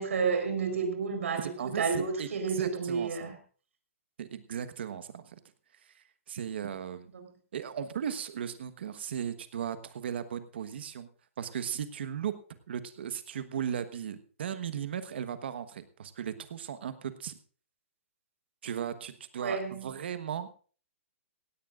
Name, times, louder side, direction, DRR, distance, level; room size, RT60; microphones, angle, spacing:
voice 1, 0.0-3.4 7.1-7.3 19.4-20.0, right 5 dB, 70° right, 6 dB, 4.3 m, -31 dB
voice 2, 1.4-2.3 2.6-3.1 4.2-5.4 6.3-7.1 7.5-11.1 11.4-12.4 12.7-17.4 18.6-20.5, right 8 dB, 50° right, 11 dB, 1.2 m, -36 dB
17.0 x 17.0 x 2.5 m, 0.41 s
hypercardioid pair, 180°, 7 cm